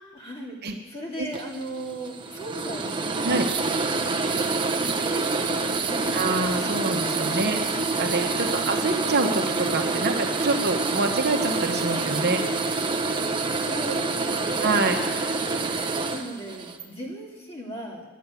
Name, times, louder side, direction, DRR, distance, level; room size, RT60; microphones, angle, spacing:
voice 1, 0.1-0.6 0.8-3.8 4.2-4.5 4.8-6.5 8.5-8.7 13.6-14.7 16.1-18.0, right 1 dB, 25° left, -2 dB, 2.6 m, -37 dB
sound 1, 1.3-16.8, right 3 dB, 20° right, 0.8 m, -27 dB
voice 2, 6.1-7.6 7.9-12.4 14.6-15.0, right 3 dB, 50° right, 4 dB, 1.1 m, -26 dB
11.5 x 9.4 x 8.4 m, 1.3 s
head